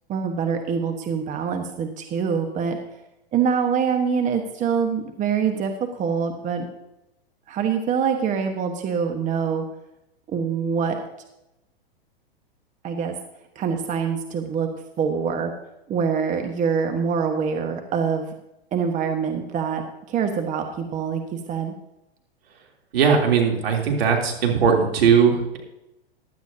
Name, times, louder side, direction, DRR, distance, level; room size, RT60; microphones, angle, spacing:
voice 1, 0.1-2.8 3.3-6.7 7.5-9.6 10.3-11.0 12.8-13.2 13.5-14.7 15.0-15.5 15.9-18.3 18.7-19.8 20.1-21.7, right 6 dB, 25° right, 5 dB, 1.2 m, -25 dB
voice 2, 22.9-25.6, right 6 dB, 75° right, 0 dB, 3.2 m, -19 dB
15.5 x 11.5 x 2.8 m, 0.89 s
hypercardioid pair, 115°, 30 cm